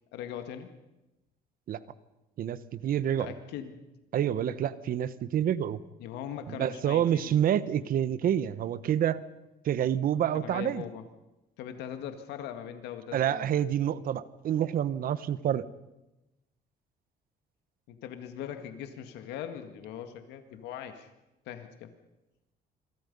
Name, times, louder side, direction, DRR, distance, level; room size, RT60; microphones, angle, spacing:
voice 1, 0.1-0.7 3.2-3.8 6.0-7.4 10.3-11.1 11.6-13.5 17.9-21.1 21.5-21.9, left 9 dB, 90° left, 7 dB, 2.0 m, -40 dB
voice 2, 2.4-3.3 4.1-5.8 6.5-9.2 9.6-10.8 13.1-15.6, right 10 dB, 60° right, 15 dB, 1.2 m, -28 dB
28.0 x 23.0 x 5.5 m, 0.98 s
cardioid pair, 110°, 17 cm